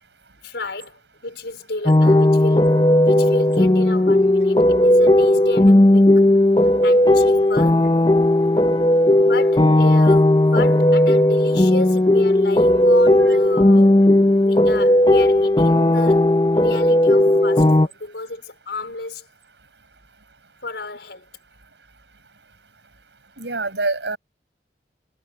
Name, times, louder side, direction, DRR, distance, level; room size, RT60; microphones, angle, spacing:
voice 1, 0.4-6.1 6.8-7.8 9.3-14.0 14.4-16.3 16.5-19.2 20.6-21.3, left 2 dB, 80° left, 4.6 m, -32 dB
sound 1, 1.9-17.9, left 1 dB, 25° left, 0.8 m, -15 dB
voice 2, 23.4-24.2, right 3 dB, 90° right, 7.3 m, -26 dB
head